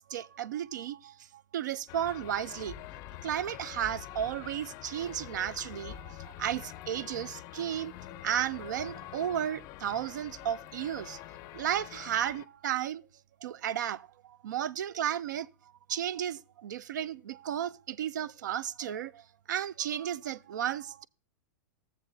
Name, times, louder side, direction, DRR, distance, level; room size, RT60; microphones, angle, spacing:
voice 1, 0.0-2.8 3.2-11.2 11.5-13.0 13.4-15.5 15.9-21.1, right 10 dB, 90° right, 0.4 m, -34 dB
sound 1, 1.9-12.5, left 14 dB, 40° left, 0.5 m, -46 dB
20.0 x 7.2 x 2.6 m
supercardioid pair, 145°, 10 cm